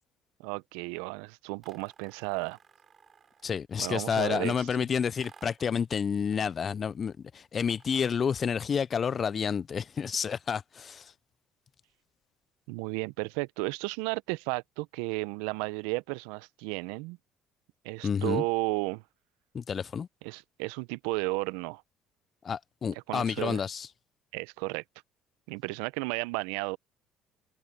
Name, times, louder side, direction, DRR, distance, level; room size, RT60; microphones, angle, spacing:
voice 1, 0.4-2.6 3.8-4.8 12.7-17.2 17.8-19.0 20.2-21.8 23.1-23.6 24.3-24.8 25.5-26.8, right 25 dB, 80° right, 0.6 m, -33 dB
sound 1, 1.6-3.6 5.2-5.8 7.6-8.6, right 6 dB, 45° right, 4.0 m, -57 dB
voice 2, 3.4-11.1 18.0-18.4 19.5-20.1 22.4-23.9, left 7 dB, 40° left, 0.3 m, -30 dB
hypercardioid pair, 70°, 0 cm